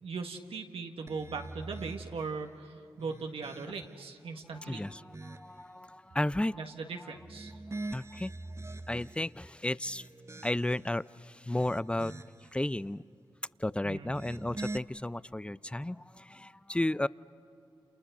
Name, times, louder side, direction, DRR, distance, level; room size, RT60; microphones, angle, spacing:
voice 1, 0.0-4.8 6.5-7.6 13.8-14.1, right 4 dB, 75° right, 4 dB, 1.6 m, -39 dB
sound 1, 1.1-2.4 2.9-4.0 4.5-5.6 7.1-9.3 9.8-10.9 11.4-12.5 14.0-14.8, right 2 dB, 30° right, 0.9 m, -44 dB
voice 2, 4.5-6.6 7.9-8.3 8.9-10.0 10.4-12.1 12.5-13.0 13.6-17.1, left 1 dB, 10° left, 18 dB, 0.5 m, -33 dB
28.5 x 28.0 x 6.8 m, 2.7 s
cardioid pair, 45°, 10 cm